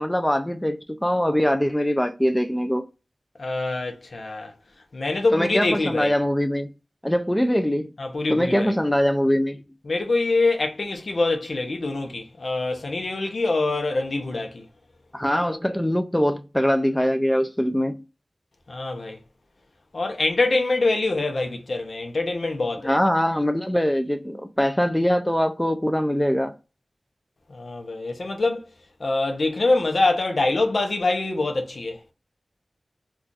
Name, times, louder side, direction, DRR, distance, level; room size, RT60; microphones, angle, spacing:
voice 1, 0.0-2.9 5.3-6.7 7.0-7.9 8.3-9.6 15.1-18.0 22.8-26.5, equal, 10° left, 0.3 m, -22 dB
voice 2, 3.4-4.5 4.9-6.1 8.0-8.7 9.9-14.7 18.7-19.2 19.9-22.9 27.5-28.6 29.0-32.1, left 2 dB, 75° left, 0.6 m, -24 dB
2.4 x 2.3 x 3.8 m
wide cardioid pair, 60°, 0 cm